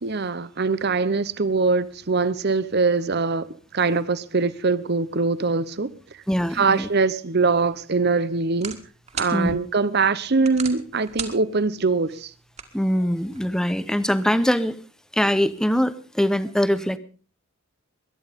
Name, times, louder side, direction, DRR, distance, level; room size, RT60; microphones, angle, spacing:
voice 1, 0.0-3.5 3.7-5.9 6.5-8.8 9.1-12.3, right 4 dB, 50° right, 0.8 m, -22 dB
voice 2, 6.3-6.9 9.3-9.6 12.7-14.8 15.1-17.0, equal, 5° left, 0.8 m, -22 dB
sound 1, 7.4-13.4, right 6 dB, 30° right, 2.0 m, -40 dB
21.5 x 10.5 x 5.2 m
head